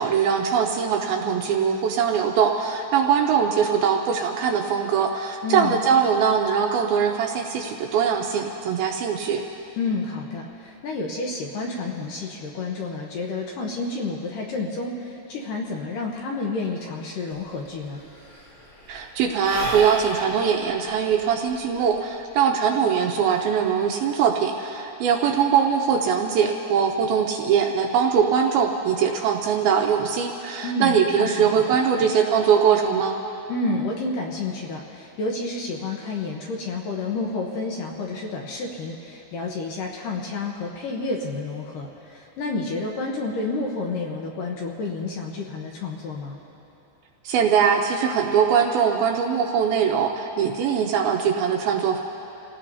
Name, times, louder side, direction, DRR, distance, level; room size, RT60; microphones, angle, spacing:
voice 1, 0.0-9.4 18.9-33.2 47.2-52.0, right 7 dB, 80° right, 2 dB, 2.3 m, -22 dB
voice 2, 5.4-5.8 9.8-18.0 30.6-31.6 33.5-46.4, left 3 dB, 70° left, -1 dB, 2.2 m, -30 dB
Sigh / Breathing, 17.4-17.5 17.6-22.4, equal, 35° left, 0.7 m, -36 dB
28.5 x 17.5 x 2.8 m, 3.0 s
omnidirectional pair, 4.9 m